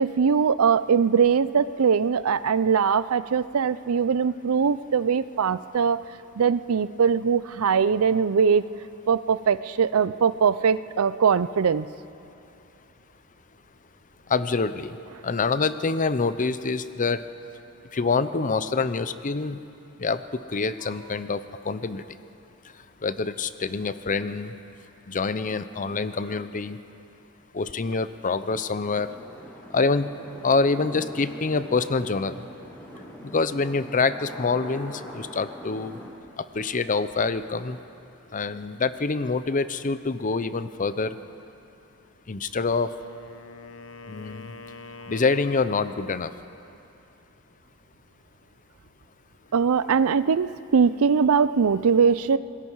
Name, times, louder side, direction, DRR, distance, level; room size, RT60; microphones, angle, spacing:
voice 1, 0.0-6.0 6.4-8.6 9.1-11.9 49.5-52.4, right 6 dB, 70° right, 16 dB, 0.5 m, -21 dB
voice 2, 14.3-15.0 15.2-17.2 17.9-19.6 20.0-22.0 23.0-24.5 25.1-26.8 27.5-29.1 29.7-30.1 30.4-32.3 33.2-36.0 36.4-37.8 38.3-41.1 42.3-42.9 44.1-44.5 45.1-46.3, left 4 dB, 40° left, 12 dB, 0.7 m, -26 dB
sound 1, 28.8-36.1, equal, 10° left, 5.7 m, -43 dB
Wind instrument woodwind instrument, 42.5-46.4, left 3 dB, 70° left, 1.1 m, -45 dB
27.0 x 20.5 x 4.7 m, 2.7 s
head